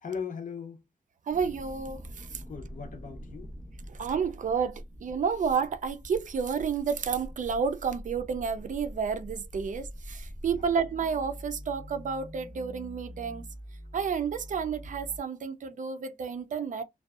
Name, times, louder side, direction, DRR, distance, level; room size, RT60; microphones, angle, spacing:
voice 1, 0.0-0.8 2.3-3.5 3.8-3.9 10.6-10.7, left 6 dB, 60° left, 0.6 m, -39 dB
sound 1, 1.3-15.2, equal, 20° left, 0.6 m, -44 dB
voice 2, 1.3-2.4 3.9-13.4 13.9-16.8, right 6 dB, 55° right, 0.4 m, -31 dB
2.5 x 2.2 x 2.3 m
wide cardioid pair, 85°, 16 cm